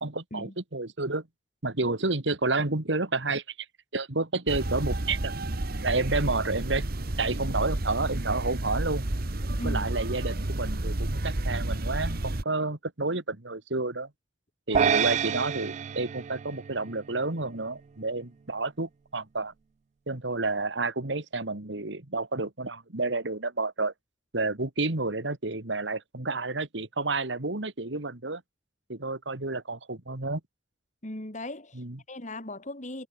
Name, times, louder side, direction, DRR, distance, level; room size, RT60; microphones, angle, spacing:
voice 1, 0.0-1.3 1.6-3.4 3.9-5.3 5.8-6.9 7.2-9.1 9.6-14.1 14.7-19.5 20.1-23.9 24.3-28.4 28.9-30.4 31.7-32.0, right 3 dB, 80° right, 2.3 m, -30 dB
sound 1, 4.5-12.4, right 1 dB, 55° right, 1.5 m, -31 dB
sound 2, 14.7-17.2, right 7 dB, 40° right, 0.3 m, -28 dB
voice 2, 31.0-31.8 32.1-33.1, left 1 dB, 40° left, 3.6 m, -38 dB
head